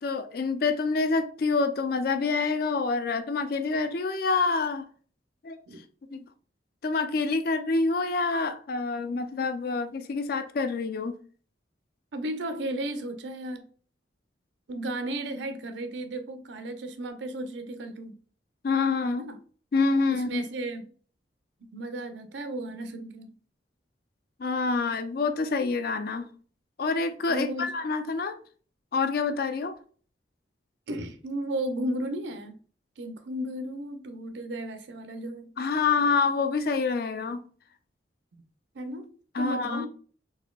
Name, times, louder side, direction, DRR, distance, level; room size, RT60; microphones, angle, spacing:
voice 1, 0.0-4.9 5.4-5.6 6.0-6.2 6.8-11.2 18.6-19.2 19.7-20.5 24.4-26.3 26.8-28.4 28.9-29.8 35.6-37.4 39.3-39.9, left 4 dB, 55° left, 0.4 m, -27 dB
voice 2, 12.1-13.7 14.7-18.2 19.1-19.4 20.1-20.9 21.7-23.3 27.3-27.7 30.9-32.6 33.0-35.5 38.7-39.1 39.4-39.9, right 1 dB, 80° right, 0.6 m, -34 dB
4.0 x 2.6 x 2.3 m
head